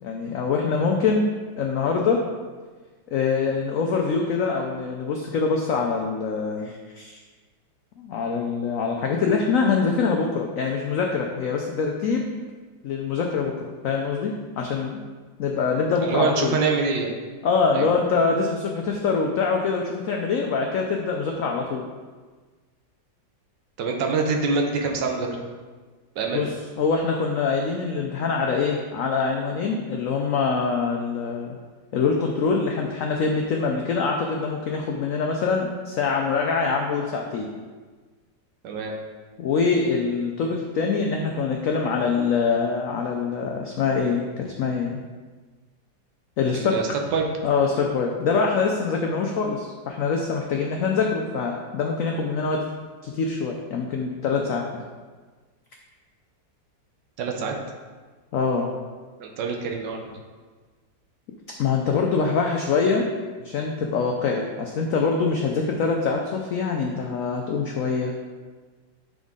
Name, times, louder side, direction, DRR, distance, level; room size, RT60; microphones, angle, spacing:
voice 1, 0.0-1.3 1.6-2.2 3.1-7.2 8.0-12.3 12.8-15.0 15.4-16.6 17.4-21.8 26.3-26.5 26.8-31.5 31.9-37.5 39.4-45.0 46.4-46.8 47.4-52.6 53.0-54.6 58.3-58.7 61.6-63.0 63.4-68.1, left 5 dB, 90° left, 1 dB, 0.7 m, -24 dB
voice 2, 16.0-17.1 17.7-17.9 23.8-25.4 26.2-26.5 38.6-39.0 46.5-47.2 47.7-47.9 57.2-57.5 59.2-60.1, right 4 dB, 75° right, 2 dB, 1.4 m, -25 dB
7.1 x 3.9 x 3.6 m, 1.4 s
omnidirectional pair, 2.0 m